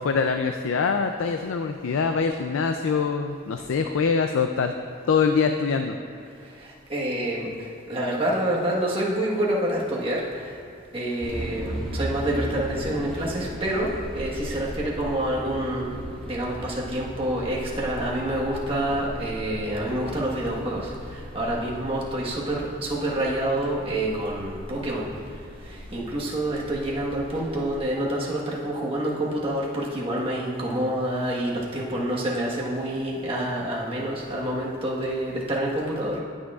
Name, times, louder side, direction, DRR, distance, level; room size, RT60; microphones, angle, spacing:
voice 1, 0.0-4.7 5.1-6.0, left 5 dB, 75° left, 6 dB, 0.4 m, -24 dB
voice 2, 6.9-7.5 7.9-10.5 10.9-15.9 16.3-25.1 25.7-36.2, right 1 dB, 25° right, -4 dB, 1.3 m, -27 dB
sound 1, 11.2-27.8, equal, ahead, 1.5 m, -37 dB
18.5 x 6.3 x 2.4 m, 2.4 s
head